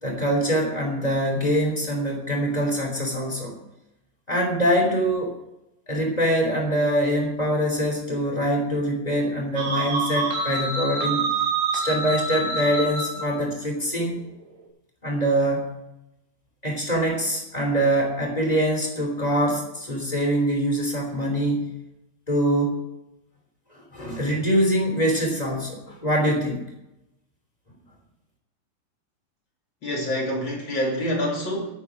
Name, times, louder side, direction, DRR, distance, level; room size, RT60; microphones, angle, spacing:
voice 1, 0.0-3.5 4.3-5.3 5.9-11.3 11.7-14.2 15.0-15.7 16.6-21.7 22.3-22.8 23.7-26.6, right 1 dB, 10° left, 0 dB, 2.7 m, -24 dB
sound 1, 9.6-13.3, right 3 dB, 85° right, 4.6 m, -26 dB
voice 2, 29.8-31.7, equal, 35° left, -1 dB, 2.7 m, -26 dB
11.5 x 9.6 x 6.0 m, 0.88 s
omnidirectional pair, 4.6 m